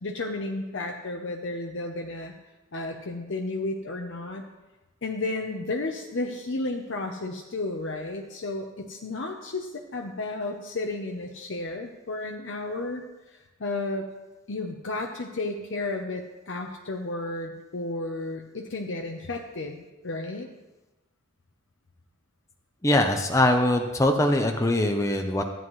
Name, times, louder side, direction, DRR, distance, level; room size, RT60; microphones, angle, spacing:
voice 1, 0.0-2.3 2.7-4.4 5.0-13.0 13.3-14.1 14.5-20.5, left 2 dB, 65° left, 2 dB, 0.7 m, -33 dB
voice 2, 22.8-25.4, left 1 dB, 15° left, 3 dB, 0.6 m, -22 dB
13.5 x 9.2 x 3.1 m, 1.1 s
head